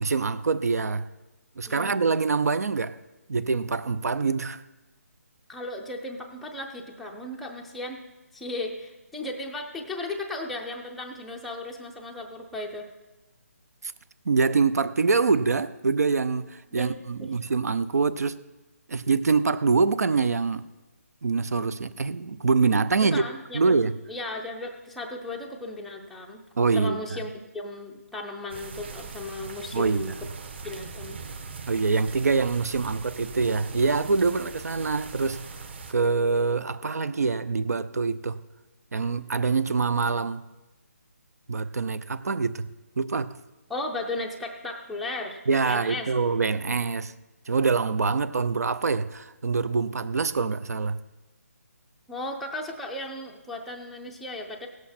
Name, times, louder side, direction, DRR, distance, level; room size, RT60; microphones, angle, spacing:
voice 1, 0.0-1.1 1.6-3.0 3.3-4.6 14.3-18.4 18.9-20.6 21.2-23.2 23.5-23.9 26.6-27.0 29.7-30.1 31.7-35.4 35.9-38.4 38.9-40.4 41.5-42.7 43.0-43.4 45.5-47.1 47.5-51.0, right 4 dB, 75° right, 0.6 m, -25 dB
voice 2, 1.7-2.0 5.5-8.0 8.3-12.9 16.7-16.9 17.2-17.3 23.0-23.8 24.1-26.4 26.7-30.1 30.6-31.2 43.7-45.4 45.6-46.1 52.1-54.7, left 2 dB, ahead, 0.4 m, -35 dB
sound 1, 28.5-35.9, right 5 dB, 45° right, 1.2 m, -41 dB
17.0 x 8.1 x 4.2 m
hypercardioid pair, 165°, 9 cm